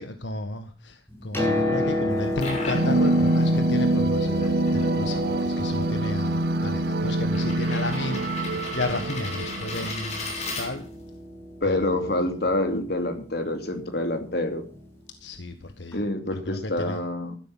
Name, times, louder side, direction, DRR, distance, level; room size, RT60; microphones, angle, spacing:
voice 1, 0.0-10.9 11.6-12.3 15.2-17.0, left 2 dB, 85° left, 7 dB, 1.6 m, -33 dB
Piano, 1.1-14.8 15.9-16.0, left 1 dB, 15° left, 8.0 m, -32 dB
sound 1, 2.1-11.1, left 2 dB, 40° left, 6.8 m, -38 dB
sound 2, 2.7-9.9, right 2 dB, 60° right, 0.6 m, -25 dB
voice 2, 11.6-14.6 15.9-17.3, left 1 dB, 60° left, 6 dB, 2.9 m, -27 dB
14.0 x 12.0 x 5.8 m, 0.37 s
head